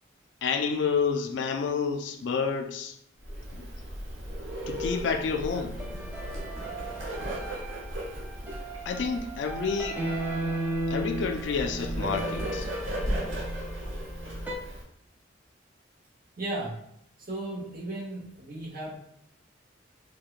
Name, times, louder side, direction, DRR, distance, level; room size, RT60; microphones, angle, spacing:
voice 1, 0.4-3.0 3.5-3.7 4.7-5.8 8.9-10.0 10.9-12.7, left 5 dB, 65° left, 6 dB, 0.3 m, -29 dB
Bird, 3.2-14.8, equal, 75° right, 1.0 m, -36 dB
sound 1, 5.0-14.5, right 2 dB, 10° right, 0.4 m, -36 dB
voice 2, 16.4-16.7 17.3-18.9, right 2 dB, 45° right, -5 dB, 1.0 m, -35 dB
4.4 x 2.1 x 2.4 m, 0.72 s
head